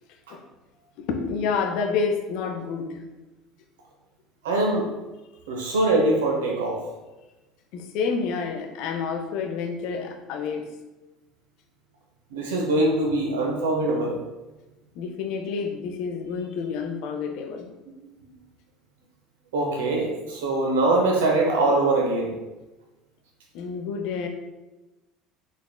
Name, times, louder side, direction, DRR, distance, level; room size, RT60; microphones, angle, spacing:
voice 1, 1.0-3.1 7.7-10.7 15.0-17.8 23.5-24.3, left 5 dB, 60° left, 5 dB, 0.4 m, -29 dB
voice 2, 4.4-4.9 5.5-6.8 12.3-14.2 19.5-22.3, right 2 dB, 70° right, 0 dB, 0.5 m, -23 dB
3.7 x 3.4 x 2.3 m, 1.1 s
figure-of-eight pair, 65°, 0 cm